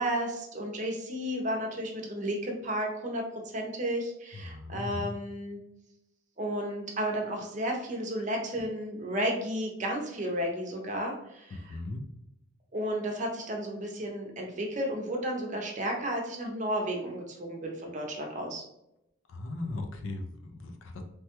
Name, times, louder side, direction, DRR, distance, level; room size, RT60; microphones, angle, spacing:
voice 1, 0.0-3.2 3.5-5.6 6.4-11.7 12.7-18.6, equal, 35° right, 1 dB, 0.6 m, -33 dB
voice 2, 4.3-5.1 11.5-12.0 19.3-21.0, left 2 dB, 65° left, 5 dB, 0.5 m, -38 dB
3.2 x 2.2 x 2.9 m, 0.83 s
head